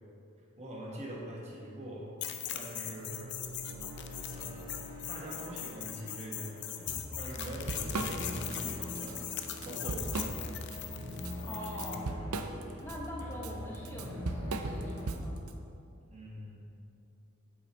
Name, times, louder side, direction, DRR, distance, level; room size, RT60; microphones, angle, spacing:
voice 1, 0.6-2.1 2.5-3.4 4.2-9.2 9.6-10.5 11.7-12.8 13.2-13.6 16.1-16.7, right 1 dB, 30° right, -3 dB, 1.6 m, -44 dB
sound 1, 2.2-12.0, left 10 dB, 55° left, 0.6 m, -40 dB
sound 2, 3.0-15.1, left 1 dB, 65° right, 2.1 m, -44 dB
Drum kit / Drum, 6.9-7.0 7.3-8.6 9.0-9.1 9.5-10.8 11.1-15.5, right 3 dB, 90° right, 0.6 m, -37 dB
voice 2, 11.4-12.1 12.8-15.4, equal, 10° left, -4 dB, 0.9 m, -43 dB
8.3 x 7.7 x 4.5 m, 2.6 s
head